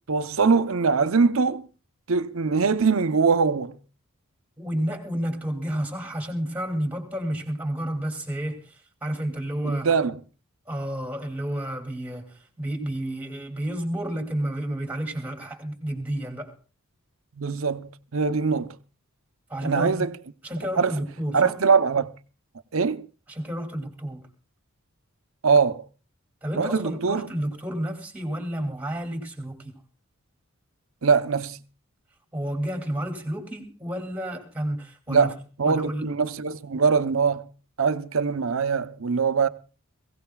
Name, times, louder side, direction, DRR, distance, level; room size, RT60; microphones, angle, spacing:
voice 1, 0.1-1.7 2.1-3.8 9.6-10.1 17.4-18.8 19.6-20.1 20.8-21.0 21.3-22.1 22.7-23.1 25.4-25.9 26.6-27.3 31.0-31.6 35.1-37.5 37.8-39.5, right 5 dB, 70° right, 0.7 m, -22 dB
voice 2, 4.6-9.9 10.7-16.6 19.5-20.1 20.4-21.6 23.3-24.3 26.4-29.7 32.3-35.3 35.6-36.1, right 1 dB, 5° right, 2.5 m, -31 dB
22.5 x 16.5 x 2.3 m
head